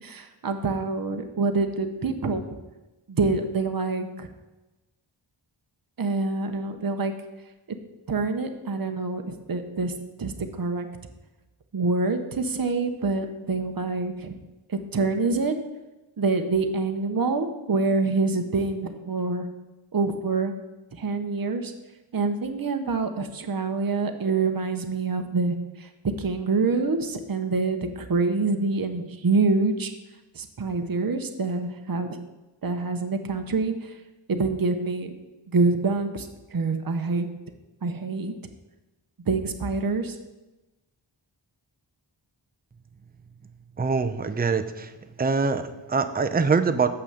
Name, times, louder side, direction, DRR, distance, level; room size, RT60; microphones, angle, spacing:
voice 1, 0.0-2.4 3.1-4.3 6.0-7.1 7.7-7.8 8.1-9.9 10.2-10.9 11.7-14.4 14.7-15.6 16.2-19.5 19.9-20.5 20.9-21.7 22.1-25.9 26.2-29.9 30.3-32.2 32.6-34.0 34.3-35.1 35.5-37.3 37.8-38.3 39.3-40.2, right 3 dB, 45° right, 7 dB, 0.8 m, -26 dB
voice 2, 43.8-44.9 45.2-46.9, right 4 dB, 20° right, 8 dB, 0.5 m, -24 dB
7.0 x 5.9 x 6.6 m, 1.1 s
wide cardioid pair, 80°, 48 cm